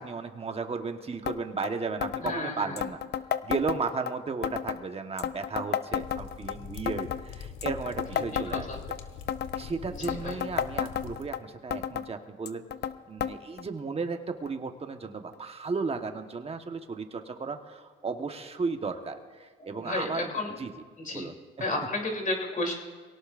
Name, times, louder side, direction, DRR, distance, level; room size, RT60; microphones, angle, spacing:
voice 1, 0.0-3.0 3.4-8.7 9.6-12.6 13.1-20.7 21.1-21.6, right 4 dB, 30° right, 6 dB, 1.2 m, -34 dB
sound 1, 1.3-1.4 1.6-1.7 2.0-2.4 2.8-4.1 4.4-4.8 5.2-6.6 6.9-7.2 7.6-9.0 9.3-9.7 10.0-11.4 11.7-12.1 12.5-12.9 13.2-13.3 13.6-13.7 14.5-14.6 15.3-15.4, left 9 dB, 55° left, 0.6 m, -31 dB
voice 2, 2.2-2.7 8.1-8.2 8.5-8.8 10.0-10.3 19.7-20.5 21.0-21.3 21.6-22.7, left 2 dB, 40° left, 0 dB, 3.1 m, -32 dB
sound 2, 6.0-11.3, left 7 dB, 85° left, 1.0 m, -43 dB
23.0 x 17.5 x 2.5 m, 1.5 s
cardioid pair, 90°, 20 cm